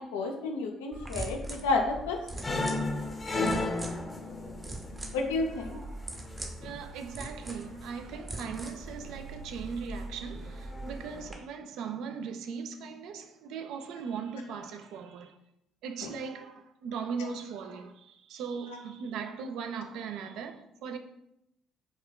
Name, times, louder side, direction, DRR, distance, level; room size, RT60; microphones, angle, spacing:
voice 1, 0.0-2.2 5.1-5.8 16.0-16.1, left 3 dB, 80° left, 0.4 m, -30 dB
sound 1, 0.9-11.3, right 2 dB, 30° right, 0.7 m, -42 dB
sound 2, 2.4-5.8 6.1-6.7 7.4-7.9 8.5-9.1 9.4-9.7 10.2-11.2, left 2 dB, 30° left, 0.6 m, -34 dB
voice 2, 6.6-15.4 15.8-21.0, right 6 dB, 65° right, 0.3 m, -39 dB
4.2 x 2.1 x 2.3 m
hypercardioid pair, 50°, 0 cm